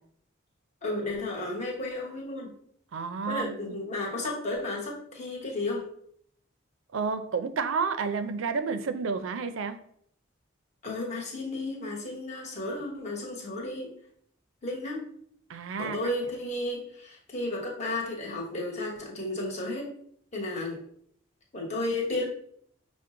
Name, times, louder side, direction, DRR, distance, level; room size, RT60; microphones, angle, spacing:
voice 1, 0.8-2.5 3.2-5.9 10.8-13.9 14.6-15.0 15.8-19.9 20.3-20.8 21.5-22.2, left 2 dB, 35° left, -2 dB, 1.1 m, -33 dB
voice 2, 2.9-3.7 6.9-9.8 15.5-16.1, right 5 dB, 80° right, 10 dB, 0.4 m, -30 dB
5.9 x 2.1 x 3.7 m, 0.66 s
head